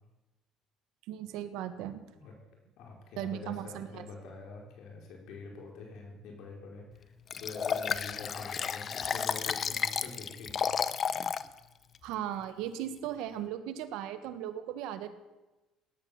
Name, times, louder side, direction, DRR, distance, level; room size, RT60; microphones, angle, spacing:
voice 1, 1.1-2.0 3.2-4.0 12.0-15.1, right 11 dB, 75° right, 10 dB, 1.5 m, -37 dB
voice 2, 2.8-7.1 7.4-10.7, left 4 dB, 65° left, 0 dB, 5.1 m, -45 dB
Liquid, 7.3-11.5 11.9-12.0, left 7 dB, 35° left, 0.7 m, -32 dB
17.0 x 11.0 x 7.2 m, 1.1 s
cardioid pair, 125°, 0 cm